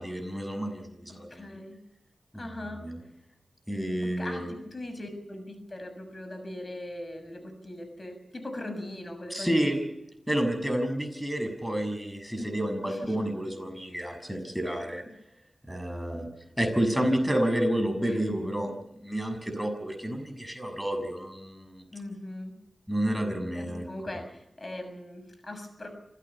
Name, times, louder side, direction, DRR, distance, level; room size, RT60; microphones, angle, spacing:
voice 1, 0.0-1.6 2.3-3.0 3.7-4.5 9.3-9.8 10.3-15.0 15.7-16.3 16.6-18.7 19.0-21.8 22.9-23.8, right 1 dB, 5° right, 6 dB, 6.5 m, -30 dB
voice 2, 1.3-1.8 2.3-2.8 4.0-9.8 12.4-12.5 12.8-13.1 18.0-18.3 21.9-22.5 23.5-25.9, left 1 dB, 40° left, 8 dB, 6.7 m, -40 dB
27.0 x 16.5 x 7.2 m, 0.82 s
cardioid pair, 50°, 0 cm